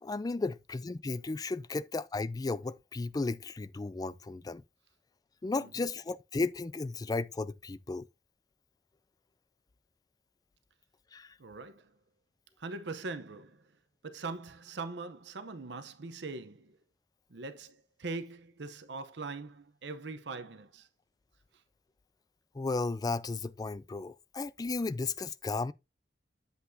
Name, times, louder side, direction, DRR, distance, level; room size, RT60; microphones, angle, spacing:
voice 1, 0.0-4.6 5.4-8.1 11.1-11.3 22.5-25.7, left 3 dB, 20° left, 0.3 m, -34 dB
voice 2, 11.4-11.9 12.6-13.7 14.0-16.8 17.3-20.9, right 3 dB, 65° right, 0.7 m, -42 dB
8.0 x 7.9 x 2.6 m
head